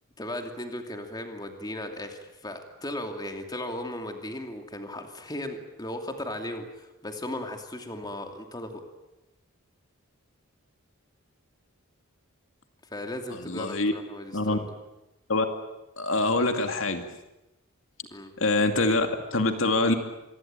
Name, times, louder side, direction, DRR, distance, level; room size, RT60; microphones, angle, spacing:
voice 1, 0.2-8.8 12.9-14.7 18.1-18.3, left 1 dB, 20° left, 4 dB, 2.7 m, -36 dB
voice 2, 13.5-13.9 14.3-14.6 15.3-15.5 16.0-17.0 18.4-19.9, left 2 dB, 65° left, 6 dB, 2.4 m, -24 dB
26.5 x 21.5 x 9.0 m, 0.98 s
head